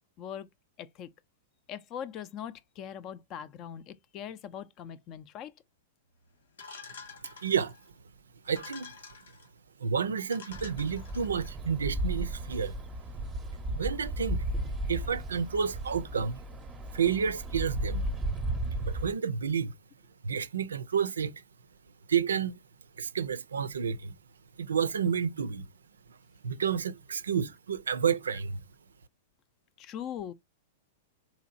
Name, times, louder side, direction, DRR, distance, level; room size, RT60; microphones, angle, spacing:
voice 1, 0.8-1.1 1.7-5.5 29.8-30.3, left 9 dB, 40° left, 0.5 m, -41 dB
sound 1, 6.6-7.9 8.4-9.5 10.0-10.1 10.3-11.5, left 5 dB, 80° left, 1.5 m, -48 dB
voice 2, 7.4-7.7 8.5-8.9 9.8-12.8 13.8-14.4 14.9-16.4 16.9-18.1 18.8-19.7 20.2-21.3 22.1-22.6 23.0-24.2 24.6-25.7 26.1-26.2 26.4-28.6, right 7 dB, 90° right, 0.4 m, -30 dB
sound 2, 10.5-19.1, right 1 dB, 15° right, 0.7 m, -35 dB
4.0 x 2.8 x 2.5 m
hypercardioid pair, 115°, 0 cm